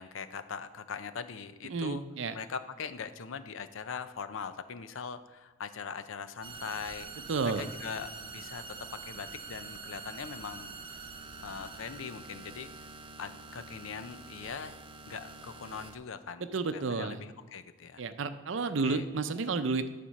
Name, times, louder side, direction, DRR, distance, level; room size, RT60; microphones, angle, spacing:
voice 1, 0.0-2.0 2.3-7.1 7.4-8.6 9.1-10.8 11.4-12.9 13.2-14.7 15.1-18.0 18.8-19.0, left 6 dB, 90° left, 11 dB, 0.6 m, -41 dB
voice 2, 1.7-2.4 7.3-7.7 16.4-17.2 18.0-19.9, right 4 dB, 70° right, 10 dB, 0.6 m, -31 dB
sound 1, 6.4-16.0, right 4 dB, 25° right, 0.5 m, -46 dB
10.0 x 4.4 x 6.4 m, 1.2 s
head